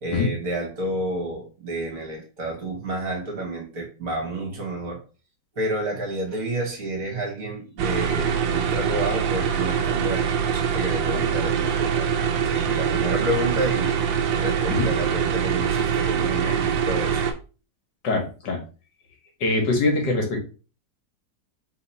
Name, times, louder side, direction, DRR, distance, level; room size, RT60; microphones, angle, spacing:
voice 1, 0.0-5.0 5.5-12.2 12.4-13.9 14.4-17.2, right 1 dB, 50° right, 0 dB, 1.6 m, -30 dB
sound 1, 7.8-17.3, right 7 dB, 80° right, 1.4 m, -24 dB
voice 2, 18.0-18.6 19.4-20.4, left 3 dB, 70° left, 2 dB, 1.7 m, -23 dB
3.7 x 2.9 x 4.1 m, 0.35 s
omnidirectional pair, 2.0 m